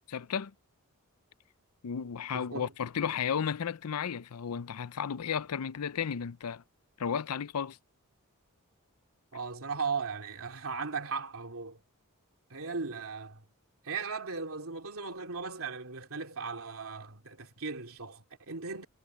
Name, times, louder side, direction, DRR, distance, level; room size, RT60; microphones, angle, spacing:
voice 1, 0.1-0.5 1.8-6.6 7.0-7.8, left 7 dB, 80° left, 0.5 m, -33 dB
voice 2, 2.3-2.7 9.3-11.8 12.5-13.4 13.8-18.8, right 5 dB, 65° right, 3.3 m, -37 dB
head